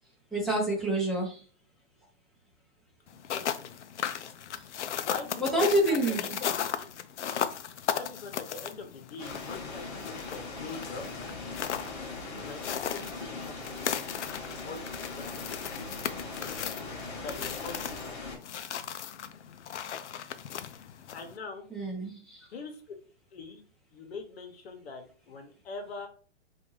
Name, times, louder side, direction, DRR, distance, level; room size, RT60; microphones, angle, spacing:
voice 1, 0.3-1.4 4.5-4.6 5.4-6.4 21.7-22.5, right 1 dB, ahead, -5 dB, 0.9 m, -28 dB
sound 1, 3.1-21.4, left 9 dB, 85° left, 0.5 m, -37 dB
voice 2, 3.3-3.7 4.9-6.9 7.8-11.1 12.3-13.9 14.6-16.6 17.2-18.2 21.1-21.6 22.5-22.8 23.3-23.6 23.9-26.1, left 4 dB, 65° left, 3 dB, 1.1 m, -43 dB
sound 2, 9.2-18.4, left 3 dB, 35° left, 1.1 m, -40 dB
3.4 x 2.6 x 3.2 m, 0.40 s
hypercardioid pair, 150°, 34 cm